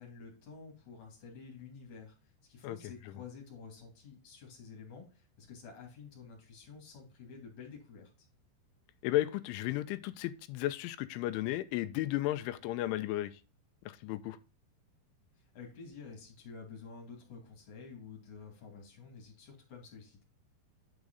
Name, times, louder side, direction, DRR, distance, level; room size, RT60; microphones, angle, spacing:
voice 1, 0.0-2.2 2.4-8.3 15.4-20.2, left 5 dB, 45° left, 3.2 m, -50 dB
voice 2, 9.0-13.3 13.9-14.4, left 15 dB, 90° left, 3.1 m, -34 dB
9.7 x 4.9 x 3.9 m
omnidirectional pair, 5.5 m